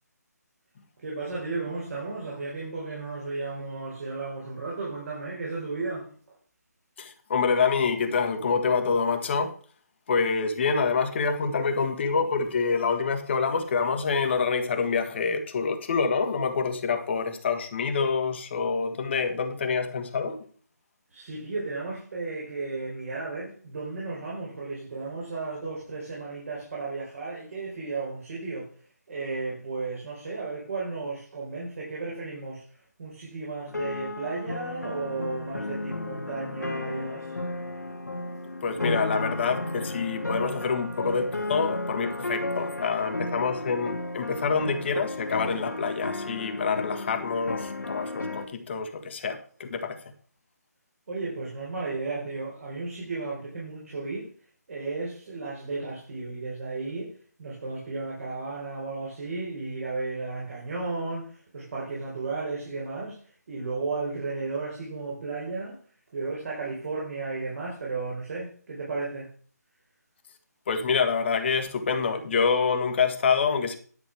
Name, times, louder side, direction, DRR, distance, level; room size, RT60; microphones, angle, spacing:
voice 1, 1.0-6.1 21.1-28.7 29.1-32.6 33.0-37.3 51.1-54.3 54.7-57.1 57.4-63.2 63.5-65.8 66.1-69.3, right 3 dB, 55° right, 4.3 m, -34 dB
voice 2, 7.0-9.5 10.1-20.4 38.6-50.1 70.7-73.8, left 5 dB, 40° left, 1.5 m, -26 dB
sound 1, 33.7-48.5, left 2 dB, 80° left, 1.9 m, -34 dB
11.0 x 6.2 x 4.8 m
figure-of-eight pair, 150°, 9 cm